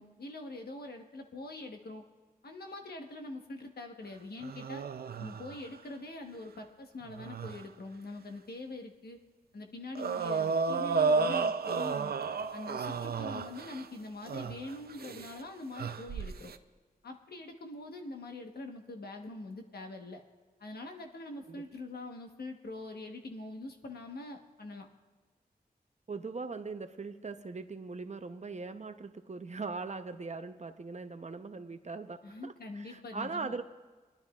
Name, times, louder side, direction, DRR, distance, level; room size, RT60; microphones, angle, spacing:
voice 1, 0.0-2.0 2.4-4.9 5.2-9.2 9.5-12.1 12.5-16.5 17.0-20.2 20.6-24.9 32.2-33.6, left 2 dB, 85° left, 3 dB, 1.1 m, -44 dB
sound 1, 4.4-5.7 7.1-7.6 10.0-13.9 14.3-15.4 15.7-16.6, right 4 dB, 80° right, 0.5 m, -32 dB
voice 2, 26.1-33.6, right 4 dB, 45° right, 8 dB, 0.7 m, -40 dB
20.5 x 11.5 x 2.4 m, 1.4 s
wide cardioid pair, 70°, 16 cm